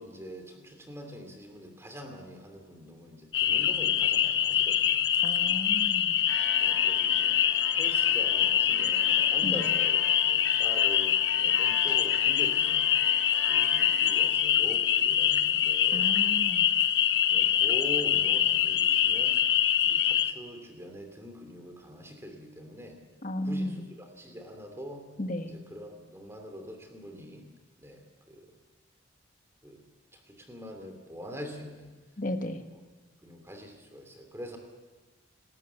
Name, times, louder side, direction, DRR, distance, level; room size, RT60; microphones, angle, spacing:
voice 1, 0.0-5.0 6.6-7.4 7.7-12.9 13.5-16.1 17.3-19.4 19.8-23.0 23.4-25.1 25.4-27.5 27.8-28.5 29.6-29.8 30.1-31.9 32.4-32.5 33.2-34.6, equal, 15° right, 4 dB, 2.9 m, -44 dB
sound 1, 3.3-20.3, left 10 dB, 60° left, 0.8 m, -25 dB
voice 2, 5.2-6.2 9.4-9.7 15.9-16.7 23.2-23.8 25.2-25.5 32.2-32.6, left 1 dB, 40° left, 6 dB, 1.5 m, -34 dB
sound 2, 6.3-14.2, left 3 dB, 75° left, 5.0 m, -41 dB
29.0 x 13.5 x 7.1 m, 1.3 s
head